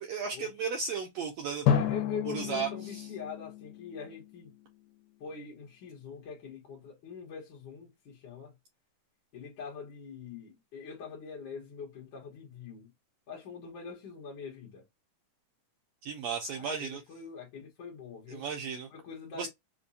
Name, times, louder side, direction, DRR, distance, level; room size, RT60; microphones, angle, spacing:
voice 1, 0.0-1.7 2.2-3.1 16.0-17.0 18.3-18.9 19.3-19.5, right 6 dB, 80° right, 1.6 m, -35 dB
voice 2, 1.6-4.5 5.2-8.5 9.3-12.9 13.3-14.8 16.5-18.4 18.9-19.5, left 5 dB, 55° left, 1.4 m, -43 dB
Drum, 1.7-4.6, left 8 dB, 80° left, 2.2 m, -31 dB
5.2 x 2.2 x 2.7 m
omnidirectional pair, 3.8 m